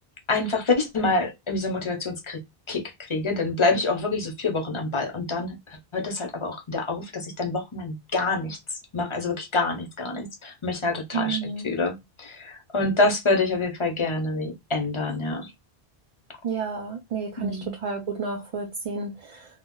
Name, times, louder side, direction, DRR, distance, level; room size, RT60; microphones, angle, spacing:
voice 1, 0.3-2.4 2.7-8.6 8.9-15.5 17.4-17.7, left 3 dB, 35° left, 0.6 m, -27 dB
voice 2, 11.1-11.7 16.4-19.5, right 5 dB, 50° right, 0.5 m, -31 dB
2.3 x 2.1 x 3.6 m
omnidirectional pair, 1.0 m